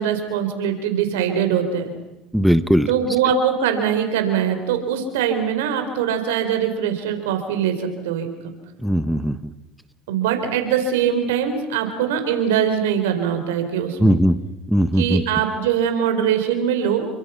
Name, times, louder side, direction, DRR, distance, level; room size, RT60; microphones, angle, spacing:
voice 1, 0.0-1.9 2.9-8.5 10.1-14.2 15.0-17.1, right 8 dB, 85° right, 7 dB, 4.5 m, -22 dB
voice 2, 2.3-2.9 8.8-9.4 14.0-14.4 14.7-15.2, equal, ahead, 11 dB, 1.2 m, -18 dB
29.0 x 24.0 x 5.9 m, 0.96 s
supercardioid pair, 95°, 0 cm